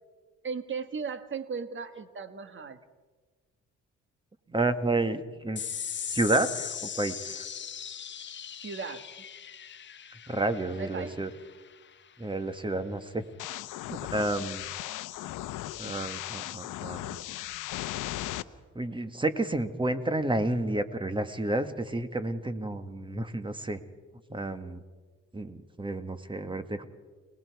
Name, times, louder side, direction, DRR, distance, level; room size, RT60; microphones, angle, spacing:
voice 1, 0.4-2.8 8.6-9.1 10.8-11.2, right 5 dB, 40° right, 10 dB, 1.5 m, -36 dB
voice 2, 4.5-5.6 6.1-7.4 10.3-11.3 12.2-13.2 13.9-14.7 15.8-17.2 18.7-23.8 24.3-24.8 25.3-26.9, right 2 dB, 15° right, 11 dB, 1.4 m, -30 dB
sound 1, 5.6-12.3, left 8 dB, 40° left, 0.8 m, -39 dB
sound 2, 13.4-18.4, left 15 dB, 85° left, 0.7 m, -37 dB
29.5 x 19.5 x 4.7 m, 1.4 s
cardioid pair, 90°, 30 cm